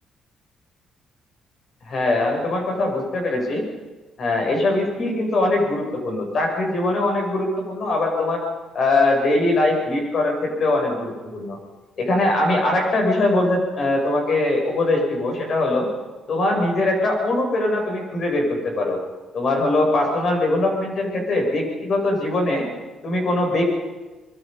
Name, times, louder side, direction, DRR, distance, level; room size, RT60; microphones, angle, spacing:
voice 1, 1.8-3.7 4.2-8.5 8.7-11.6 12.0-15.9 16.3-19.0 19.3-22.7 23.0-23.6, left 2 dB, 55° left, 1 dB, 7.3 m, -21 dB
25.0 x 22.0 x 5.5 m, 1.2 s
cardioid pair, 90°, 0 cm